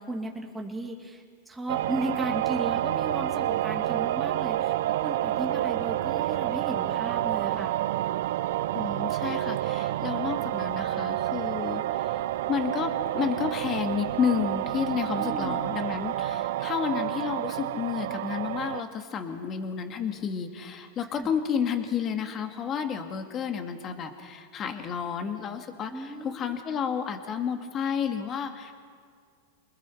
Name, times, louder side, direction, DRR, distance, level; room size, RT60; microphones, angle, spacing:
voice 1, 0.0-7.7 15.1-15.6 21.1-21.3 25.9-26.6, right 1 dB, 5° right, 0 dB, 2.5 m, -35 dB
sound 1, 1.7-18.8, right 13 dB, 70° right, 0.5 m, -29 dB
voice 2, 8.7-12.2 12.5-28.7, left 7 dB, 30° left, 6 dB, 2.1 m, -31 dB
29.0 x 21.0 x 4.6 m, 2.1 s
hypercardioid pair, 125°, 0 cm